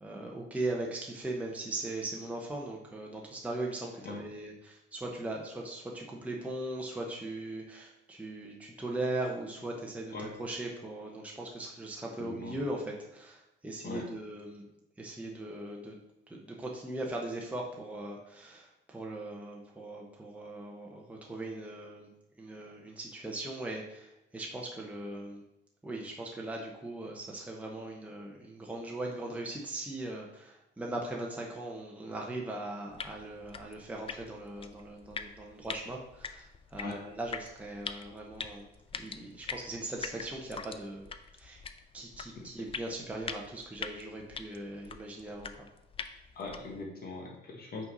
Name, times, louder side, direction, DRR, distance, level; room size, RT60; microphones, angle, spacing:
voice 1, 0.0-14.7 15.0-16.0 16.3-22.1 22.4-25.4 25.8-38.7 38.9-41.1 41.4-41.6 41.9-45.7, right 2 dB, 5° right, -1 dB, 0.9 m, -39 dB
voice 2, 12.2-12.6 13.8-14.0 36.8-37.0 46.3-47.8, left 3 dB, 50° left, 0 dB, 1.2 m, -41 dB
sound 1, 32.9-46.8, left 5 dB, 30° left, 0.4 m, -44 dB
5.5 x 4.1 x 5.3 m, 0.87 s
cardioid pair, 95°, 20 cm